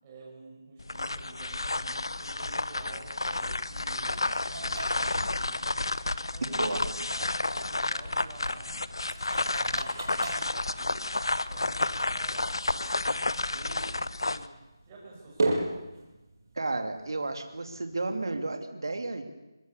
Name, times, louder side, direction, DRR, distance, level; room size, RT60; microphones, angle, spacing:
voice 1, 0.0-5.7 6.3-8.9 9.5-11.1 11.5-14.6 14.8-15.8, right 2 dB, 20° right, -3 dB, 6.3 m, -49 dB
sound 1, 0.8-14.5, left 2 dB, 85° left, 1.1 m, -31 dB
sound 2, 2.5-18.3, right 2 dB, 45° right, 7.5 m, -40 dB
voice 2, 16.6-19.2, right 2 dB, 65° right, 6 dB, 2.8 m, -32 dB
23.5 x 21.5 x 8.4 m, 1.0 s
figure-of-eight pair, 170°, 2 cm